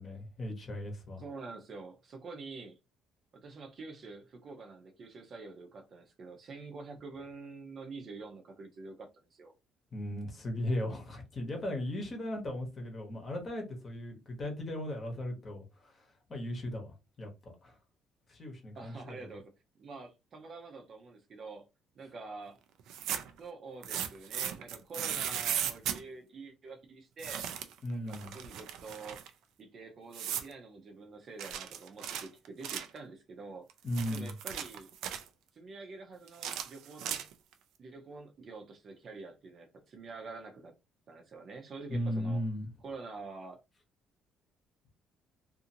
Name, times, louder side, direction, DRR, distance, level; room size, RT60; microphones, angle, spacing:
voice 1, 0.0-1.2 9.9-17.8 18.3-19.2 27.8-28.3 33.8-34.3 41.9-42.7, left 1 dB, 30° left, 1.0 m, -37 dB
voice 2, 1.2-2.8 3.3-9.5 18.8-19.5 19.8-21.6 21.9-22.6 23.4-27.5 27.9-29.2 29.6-33.7 34.1-34.9 35.5-37.3 37.8-40.7 41.1-42.4 42.8-43.6, right 3 dB, 40° right, 0.7 m, -47 dB
sound 1, 22.8-23.4 23.8-26.0 27.2-27.8 28.1-29.3 30.1-30.5 31.4-33.0 33.7-35.3 36.3-37.5, right 9 dB, 80° right, 0.4 m, -37 dB
2.7 x 2.5 x 2.7 m
cardioid pair, 145°, 0 cm